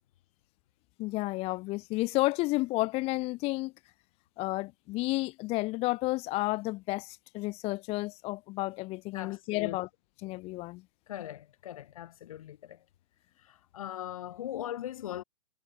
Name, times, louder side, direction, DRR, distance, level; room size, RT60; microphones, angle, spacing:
voice 1, 1.0-3.7 4.4-9.9 10.2-10.8, left 21 dB, 30° left, 0.9 m, -31 dB
voice 2, 9.1-9.8 11.1-12.8 13.5-15.2, left 12 dB, 60° left, 2.5 m, -40 dB
hypercardioid pair, 120°, 20 cm